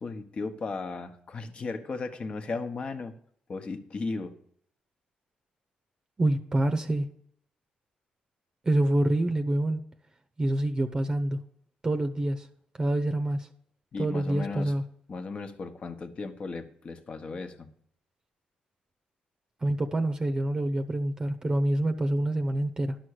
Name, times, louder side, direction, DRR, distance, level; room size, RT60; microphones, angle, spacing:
voice 1, 0.0-3.1 3.5-4.4 13.9-14.7 15.1-17.7, left 3 dB, 45° left, 8 dB, 1.1 m, -36 dB
voice 2, 6.2-7.1 8.6-9.8 10.4-11.4 11.8-12.5 12.8-13.5 14.0-14.8 19.6-23.0, right 1 dB, 25° right, 6 dB, 0.8 m, -26 dB
11.5 x 6.2 x 6.5 m, 0.66 s
cardioid pair, 95°, 3 cm